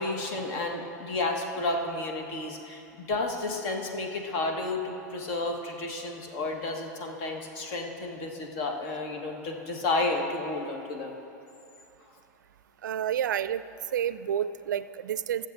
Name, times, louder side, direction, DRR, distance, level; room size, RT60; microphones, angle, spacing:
voice 1, 0.0-11.2, left 2 dB, 55° left, 2 dB, 1.6 m, -31 dB
voice 2, 12.8-13.6 13.9-15.5, right 9 dB, 85° right, 15 dB, 0.4 m, -29 dB
21.5 x 7.4 x 2.6 m, 2.7 s
hypercardioid pair, 110°, 10 cm